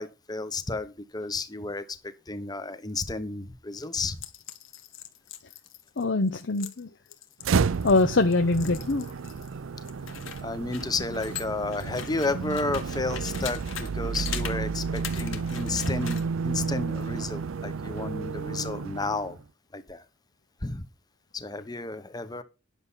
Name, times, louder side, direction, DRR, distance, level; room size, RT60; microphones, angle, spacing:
voice 1, 0.0-4.2 8.7-8.8 10.4-19.4 19.7-20.0 20.6-20.9 21.3-22.4, left 3 dB, 20° left, 0.9 m, -32 dB
sound 1, 4.2-9.5 9.8-13.9 14.1-14.6 14.9-16.3, left 8 dB, 75° left, 1.6 m, -41 dB
voice 2, 6.0-6.9 7.8-9.1, left 3 dB, 60° left, 0.8 m, -23 dB
sound 2, 7.4-19.4, right 5 dB, 80° right, 0.5 m, -31 dB
10.5 x 7.0 x 5.6 m
head